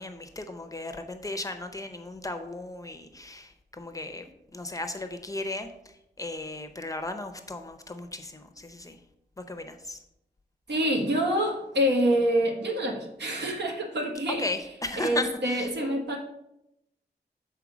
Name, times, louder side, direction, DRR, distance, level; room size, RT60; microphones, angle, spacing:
voice 1, 0.0-9.0 9.4-10.0 14.3-15.7, left 2 dB, 20° left, 7 dB, 0.6 m, -36 dB
voice 2, 10.7-14.4 15.0-16.2, equal, 80° right, 1 dB, 1.4 m, -26 dB
7.1 x 4.4 x 5.0 m, 0.82 s
wide cardioid pair, 140°, 18 cm